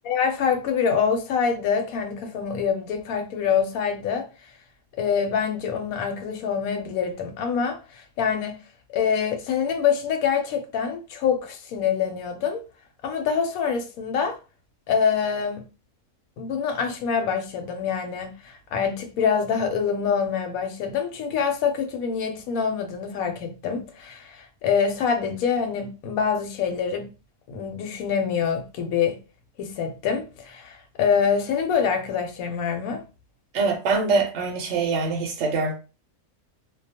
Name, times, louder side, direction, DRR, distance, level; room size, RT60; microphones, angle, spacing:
voice 1, 0.0-4.3 5.0-8.6 8.9-12.6 13.0-14.4 14.9-15.6 16.4-27.1 27.5-29.2 29.6-33.0, left 6 dB, 75° left, 1.0 m, -25 dB
voice 2, 33.5-35.7, right 4 dB, 65° right, 0.8 m, -24 dB
2.3 x 2.2 x 2.7 m
omnidirectional pair, 1.6 m